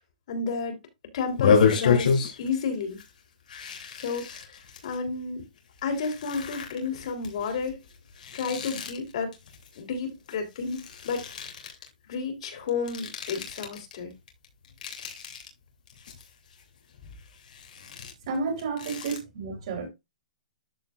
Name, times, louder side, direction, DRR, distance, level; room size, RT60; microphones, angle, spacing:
voice 1, 0.3-0.8 1.1-3.0 4.0-5.4 5.8-7.8 8.3-9.3 9.8-11.3 12.1-14.1, left 5 dB, 50° left, 3.3 m, -31 dB
sound 1, 1.3-2.6 2.9-3.1 3.5-5.0 5.6-10.3 10.6-11.9 12.7-13.9 14.3-15.5 15.9-16.6 17.0-19.2, left 6 dB, 80° left, 2.8 m, -29 dB
voice 2, 18.3-19.9, right 4 dB, 45° right, 3.1 m, -31 dB
13.0 x 4.7 x 2.4 m
hypercardioid pair, 170°, 4 cm